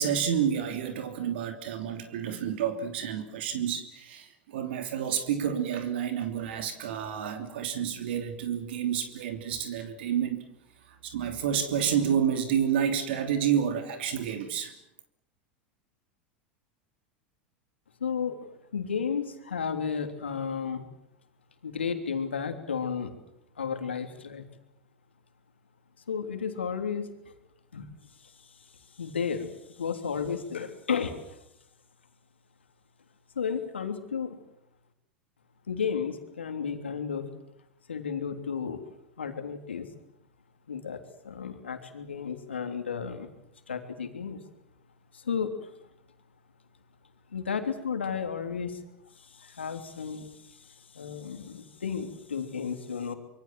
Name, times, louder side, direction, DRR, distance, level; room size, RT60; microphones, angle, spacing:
voice 1, 0.0-10.4 11.0-14.7, right 8 dB, 70° right, 7 dB, 3.0 m, -29 dB
voice 2, 18.0-18.5 18.7-20.8 21.6-23.1 23.6-24.4 26.1-27.3 27.7-27.9 28.2-28.6 28.9-31.4 33.3-34.4 35.7-37.3 37.9-38.8 39.2-39.9 40.7-43.3 43.7-44.5 45.1-45.7 47.3-48.8 49.2-53.1, left 6 dB, 90° left, 6 dB, 3.2 m, -33 dB
26.0 x 23.0 x 7.6 m, 0.78 s
hypercardioid pair, 90°, 6 cm